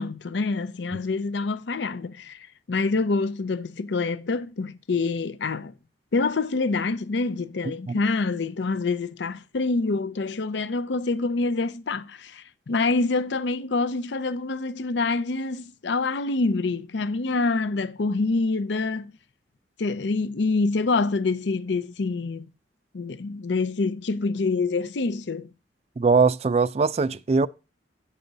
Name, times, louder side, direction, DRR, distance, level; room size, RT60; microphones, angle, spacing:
voice 1, 0.0-5.7 6.1-19.1 19.8-22.5 22.9-25.5, left 3 dB, 75° left, 0.6 m, -26 dB
voice 2, 26.0-27.5, right 4 dB, 35° right, 0.3 m, -21 dB
8.9 x 6.7 x 3.9 m
head